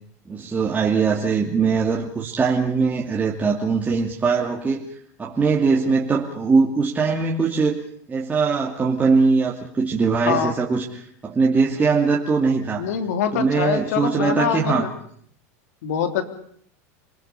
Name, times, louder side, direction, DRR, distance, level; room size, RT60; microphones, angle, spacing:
voice 1, 0.3-4.9 5.2-7.8 8.1-12.8 13.3-14.9, right 4 dB, 20° right, -2 dB, 2.6 m, -21 dB
voice 2, 12.8-14.9 15.8-16.2, left 8 dB, 75° left, 7 dB, 3.2 m, -24 dB
27.5 x 19.5 x 7.0 m, 0.62 s
supercardioid pair, 115°, 8 cm